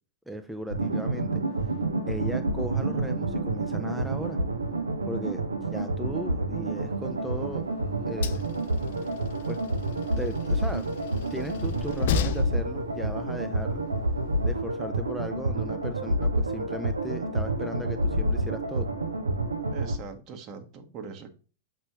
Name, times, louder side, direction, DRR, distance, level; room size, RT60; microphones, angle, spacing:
voice 1, 0.3-1.7 2.1-4.4 5.1-7.6 8.1-8.4 9.5-9.6 10.1-10.9 11.3-13.8 14.4-18.9, equal, ahead, 7 dB, 0.5 m, -37 dB
sound 1, 0.7-20.0, right 2 dB, 80° right, 0.8 m, -29 dB
Train, 6.8-14.6, left 8 dB, 55° left, 0.6 m, -36 dB
voice 2, 19.7-21.4, right 5 dB, 35° right, 6 dB, 1.2 m, -41 dB
6.0 x 5.4 x 3.0 m, 0.36 s
figure-of-eight pair, 95°, 0 cm